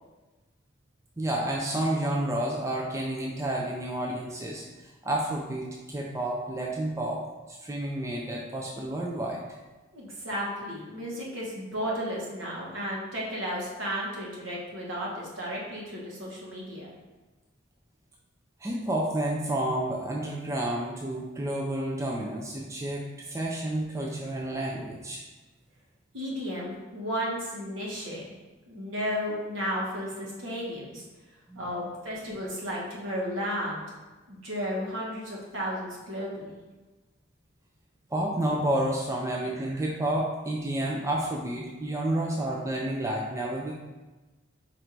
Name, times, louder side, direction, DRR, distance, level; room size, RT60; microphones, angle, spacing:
voice 1, 1.2-7.2 7.5-9.4 18.6-25.2 31.5-31.7 38.1-43.7, right 1 dB, 15° right, -2 dB, 0.3 m, -30 dB
voice 2, 9.9-16.9 26.1-28.3 28.7-31.0 31.5-33.8 34.3-36.5, equal, 75° right, -4 dB, 1.2 m, -33 dB
4.4 x 2.6 x 4.4 m, 1.2 s
head